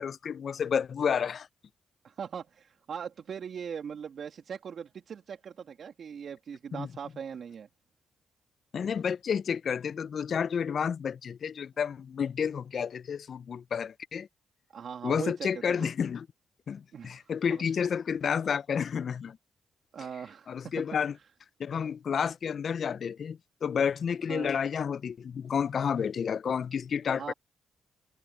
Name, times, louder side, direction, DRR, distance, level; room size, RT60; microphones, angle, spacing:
voice 1, 0.0-1.5 6.7-6.9 8.7-14.3 15.0-16.3 16.7-19.4 20.5-21.1 21.6-27.3, left 7 dB, 60° left, 0.4 m, -30 dB
voice 2, 2.0-7.7 14.7-15.9 16.9-17.6 19.9-20.7 24.3-24.6 27.1-27.3, right 7 dB, 65° right, 2.4 m, -40 dB
supercardioid pair, 60°, 0 cm